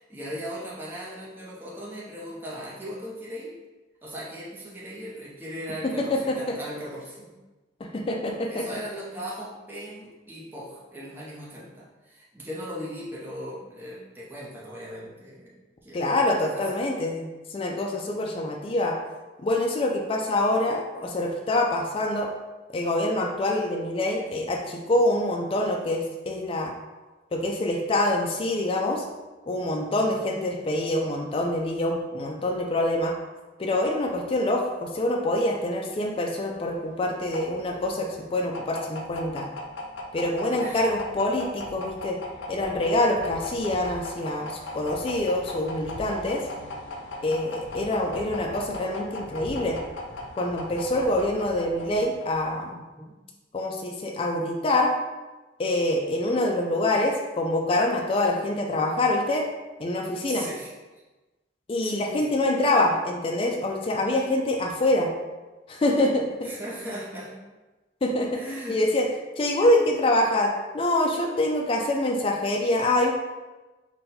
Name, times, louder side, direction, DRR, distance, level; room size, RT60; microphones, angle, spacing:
voice 1, 0.0-3.5 4.0-7.3 8.2-15.5 15.8-16.1 16.5-16.6 30.0-30.5 40.5-40.8 50.9-51.0 53.0-53.1 60.3-60.7 61.8-62.2 66.4-67.3 68.3-68.8, equal, 10° right, -7 dB, 0.6 m, -38 dB
voice 2, 5.8-6.6 7.9-8.7 15.9-19.0 19.4-22.3 22.7-26.7 27.3-29.0 29.5-33.2 33.6-39.5 40.1-42.2 42.5-46.4 47.2-49.8 50.4-52.8 53.5-54.9 55.6-59.5 59.8-60.5 61.7-65.1 65.7-66.5 68.0-68.4 68.7-69.1 69.4-73.1, left 1 dB, 30° left, 0 dB, 0.3 m, -25 dB
sound 1, 36.6-52.6, left 2 dB, 85° left, 0.5 m, -38 dB
4.0 x 2.2 x 4.0 m, 1.2 s
head